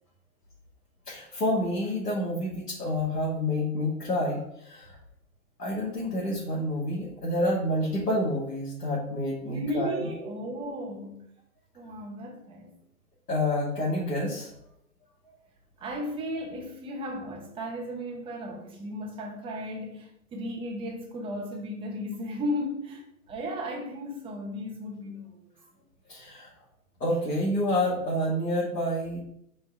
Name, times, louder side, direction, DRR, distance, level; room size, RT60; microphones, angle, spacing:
voice 1, 1.1-5.0 5.6-10.1 13.3-14.5 26.1-26.5 27.0-29.2, left 1 dB, 85° left, 2.4 m, -28 dB
voice 2, 9.4-11.2 11.7-12.8 15.8-25.4, equal, 10° right, 1.0 m, -35 dB
5.0 x 4.9 x 4.6 m
figure-of-eight pair, 130°, 46 cm